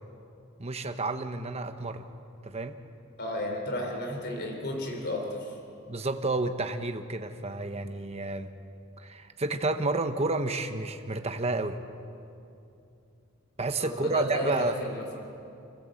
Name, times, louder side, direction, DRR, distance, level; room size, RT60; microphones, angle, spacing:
voice 1, 0.6-2.0 2.4-2.8 5.9-8.5 9.0-11.8 13.6-14.8, right 2 dB, 30° right, 7 dB, 1.1 m, -30 dB
voice 2, 3.2-5.6 13.8-15.2, left 1 dB, 50° left, 2 dB, 3.8 m, -33 dB
28.5 x 15.5 x 7.8 m, 2.6 s
head